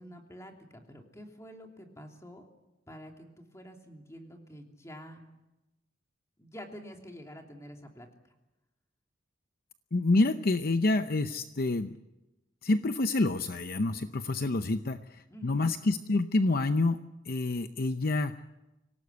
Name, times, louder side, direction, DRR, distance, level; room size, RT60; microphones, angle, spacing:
voice 1, 0.0-2.5 2.9-5.3 6.4-8.1 15.3-15.7, equal, 15° left, 2 dB, 2.9 m, -48 dB
voice 2, 9.9-12.0 12.6-15.0 15.4-17.0 17.3-18.4, left 2 dB, 50° left, 9 dB, 0.7 m, -27 dB
25.5 x 18.0 x 8.2 m, 0.99 s
head